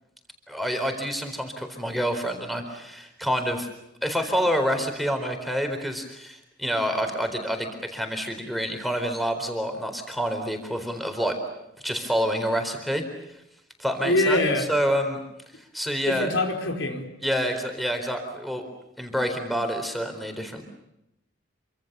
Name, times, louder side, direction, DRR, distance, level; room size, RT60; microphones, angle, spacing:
voice 1, 0.5-3.7 4.0-11.4 11.8-13.0 13.8-14.4 14.7-15.2 15.7-16.3 17.2-18.7 19.0-20.6, equal, ahead, 5 dB, 4.1 m, -27 dB
voice 2, 14.0-14.7 16.0-17.0, left 2 dB, 85° left, 4 dB, 4.6 m, -24 dB
28.0 x 25.5 x 6.9 m, 0.87 s
head